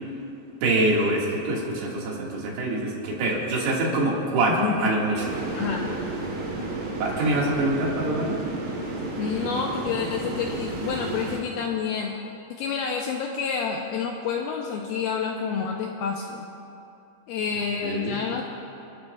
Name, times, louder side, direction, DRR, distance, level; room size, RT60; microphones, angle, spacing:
voice 1, 0.6-5.2 7.0-8.4 17.8-18.2, right 2 dB, 70° right, -3 dB, 3.9 m, -25 dB
voice 2, 4.5-4.9 5.5-5.9 9.1-12.1 12.5-16.5 17.3-18.4, left 6 dB, 85° left, 1 dB, 2.3 m, -28 dB
sound 1, 5.2-11.4, right 2 dB, 50° right, 2.6 m, -32 dB
29.5 x 12.5 x 2.4 m, 2.8 s
omnidirectional pair, 5.0 m